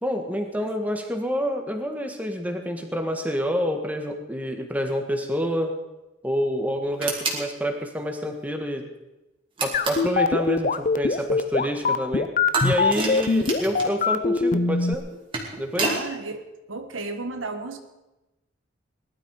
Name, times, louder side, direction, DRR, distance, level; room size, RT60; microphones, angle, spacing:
voice 1, 0.0-5.7 6.2-8.8 9.6-12.3 12.6-15.0 15.6-16.0, equal, 10° right, 4 dB, 1.6 m, -28 dB
sound 1, 7.0-7.4 9.6-10.1 12.5-13.9 15.1-16.0, right 3 dB, 25° right, 2.5 m, -28 dB
sound 2, 9.7-14.9, left 4 dB, 40° left, 0.6 m, -21 dB
voice 2, 15.8-17.8, right 3 dB, 85° right, 7 dB, 1.4 m, -34 dB
19.5 x 12.0 x 4.8 m, 1.0 s
head